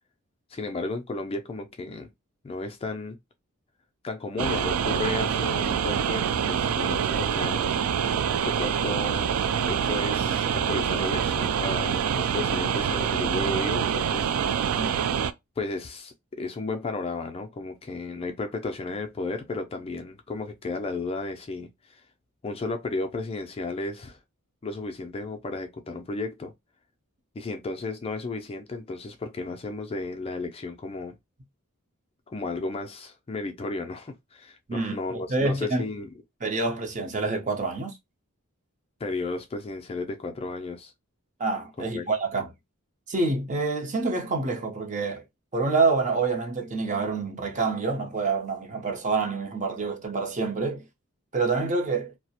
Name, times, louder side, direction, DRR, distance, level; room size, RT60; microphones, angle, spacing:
voice 1, 0.5-2.1 2.4-3.2 4.0-7.8 8.4-9.3 9.6-14.4 14.6-14.8 15.6-22.0 22.4-24.2 24.6-26.5 27.3-31.1 32.3-36.1 39.0-40.9 41.8-42.1, left 3 dB, 25° left, 0.4 m, -33 dB
sound 1, 4.4-15.3, right 8 dB, 75° right, 0.3 m, -26 dB
voice 2, 34.7-35.8 36.4-37.9 41.4-42.5 43.1-45.2 45.5-50.8 51.3-52.1, right 3 dB, 35° right, 0.6 m, -27 dB
2.3 x 2.0 x 2.7 m
head